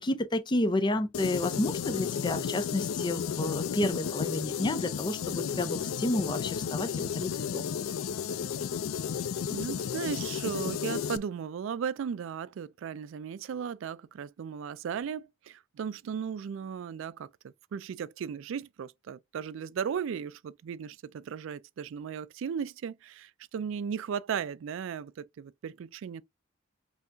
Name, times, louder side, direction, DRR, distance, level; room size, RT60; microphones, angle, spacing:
voice 1, 0.0-7.7, left 1 dB, 25° left, 0.5 m, -31 dB
sound 1, 1.1-11.2, left 7 dB, 85° left, 0.4 m, -33 dB
voice 2, 9.5-26.2, right 7 dB, 70° right, 0.3 m, -36 dB
5.6 x 2.9 x 2.5 m
head